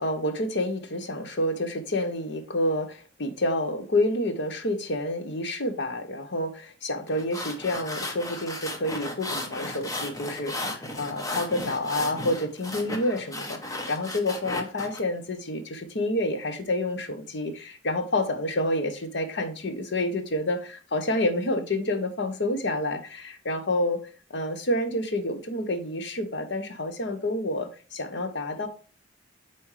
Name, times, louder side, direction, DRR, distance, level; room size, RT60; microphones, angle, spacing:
voice 1, 0.0-24.0 24.3-28.7, left 1 dB, 60° left, 0.9 m, -28 dB
sound 1, 7.1-15.0, left 1 dB, 15° left, 0.8 m, -35 dB
7.3 x 4.3 x 3.2 m
head